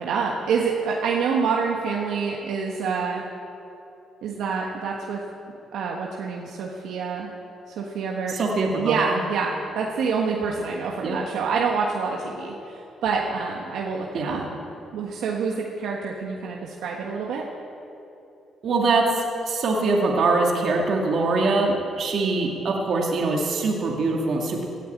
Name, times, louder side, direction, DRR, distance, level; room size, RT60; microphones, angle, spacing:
voice 1, 0.0-3.2 4.2-5.2 5.7-7.3 7.7-8.3 8.7-14.4 14.9-17.5, right 5 dB, 80° right, -1 dB, 1.5 m, -27 dB
voice 2, 8.3-9.2 11.0-11.2 14.1-14.4 18.6-24.6, right 3 dB, 60° right, -1 dB, 2.3 m, -23 dB
17.5 x 9.2 x 8.6 m, 3.0 s
cardioid pair, 90°, 0 cm